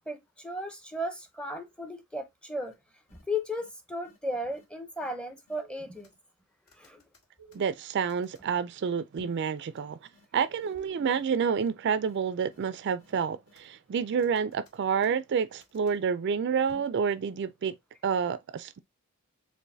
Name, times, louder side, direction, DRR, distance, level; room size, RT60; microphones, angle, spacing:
voice 1, 0.0-2.7 3.1-6.1 6.8-7.0, left 1 dB, 5° left, 0.6 m, -35 dB
sound 1, 2.7-2.8 3.1-3.2 3.6-3.7 4.0-4.2 4.5-4.6 5.0-5.1 5.5-6.3 6.7-8.5 9.2-9.5 9.7-9.8 10.1-10.3 10.6-10.7 11.1-11.2 11.6-11.7 12.0-12.2 12.5-12.6 13.0-13.8 14.2-16.0 16.7-17.0, equal, 65° left, 1.6 m, -56 dB
voice 2, 7.5-10.0 10.3-17.7 18.0-18.8, right 6 dB, 50° right, 0.3 m, -29 dB
6.9 x 2.5 x 2.6 m
head